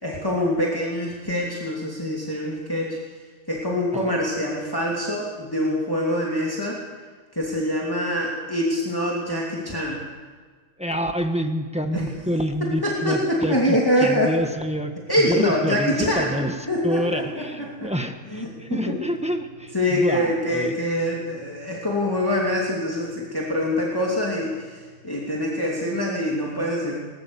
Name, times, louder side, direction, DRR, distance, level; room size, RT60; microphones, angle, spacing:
voice 1, 0.0-3.0 3.5-6.8 7.3-10.1 11.9-12.0 12.6-14.3 15.1-16.4 16.7-17.9 18.3-18.9 19.7-27.0, equal, 15° left, -4 dB, 2.7 m, -25 dB
voice 2, 10.8-20.8, equal, 5° right, 5 dB, 1.4 m, -27 dB
sound 1, 14.5-25.9, left 1 dB, 65° right, 4.5 m, -50 dB
20.5 x 19.5 x 7.0 m, 1.5 s
omnidirectional pair, 1.3 m